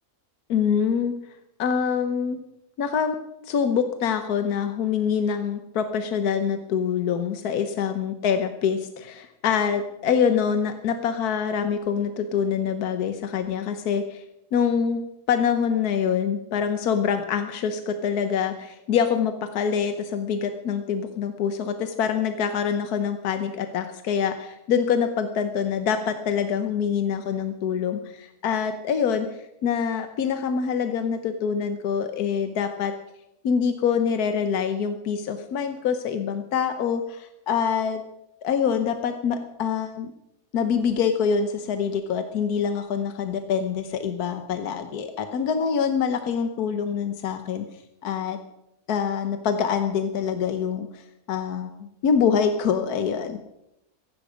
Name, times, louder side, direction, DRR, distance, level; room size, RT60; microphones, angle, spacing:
voice 1, 0.5-1.1 1.6-2.4 2.8-3.2 3.4-14.2 14.5-15.0 15.3-32.9 33.4-38.0 38.4-40.1 40.5-47.6 48.0-48.4 48.9-53.4, left 7 dB, 80° left, 8 dB, 1.5 m, -25 dB
16.5 x 15.5 x 5.1 m, 0.85 s
omnidirectional pair, 1.6 m